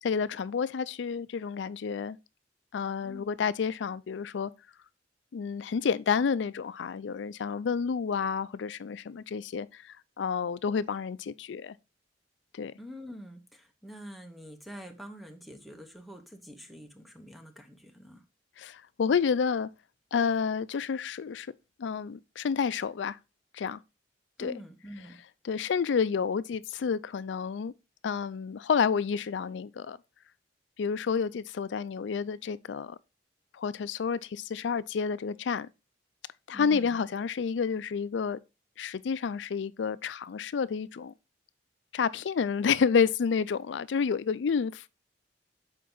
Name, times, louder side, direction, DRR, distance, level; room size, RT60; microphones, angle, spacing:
voice 1, 0.0-2.2 2.7-4.5 5.3-11.8 12.5-12.7 18.6-19.7 20.1-21.5 21.8-23.2 23.5-23.8 24.4-24.5 25.4-27.7 28.0-30.0 30.8-33.0 33.5-35.7 36.5-38.4 38.8-41.1 41.9-44.9, left 6 dB, 75° left, 0.4 m, -29 dB
voice 2, 2.8-3.3 12.8-18.2 24.4-25.2 36.5-37.0, equal, ahead, 1.0 m, -46 dB
7.6 x 4.5 x 3.9 m
head